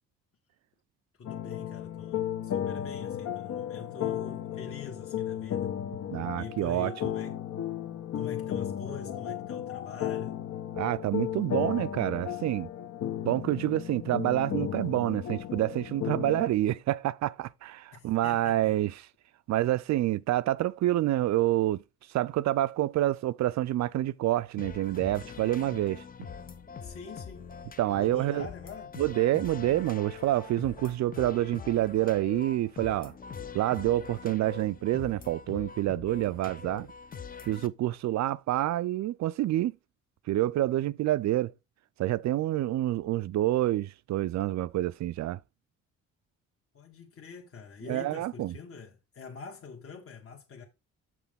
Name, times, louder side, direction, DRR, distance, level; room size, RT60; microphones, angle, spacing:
sound 1, 1.2-16.5, left 10 dB, 65° left, 1.2 m, -34 dB
voice 1, 1.2-5.7 6.4-7.4 8.1-10.5 17.9-18.7 26.8-27.5 27.9-29.0 46.7-50.6, left 5 dB, 45° left, 1.4 m, -45 dB
voice 2, 6.1-6.9 10.8-12.7 13.2-18.9 19.5-21.8 22.1-26.0 27.8-28.5 29.0-33.1 33.5-36.9 37.4-39.7 40.3-41.5 42.0-45.4 47.9-48.5, right 14 dB, 65° right, 0.5 m, -27 dB
sound 2, 24.6-37.7, left 6 dB, 30° left, 0.6 m, -43 dB
7.5 x 5.9 x 3.6 m
cardioid pair, 90°, 30 cm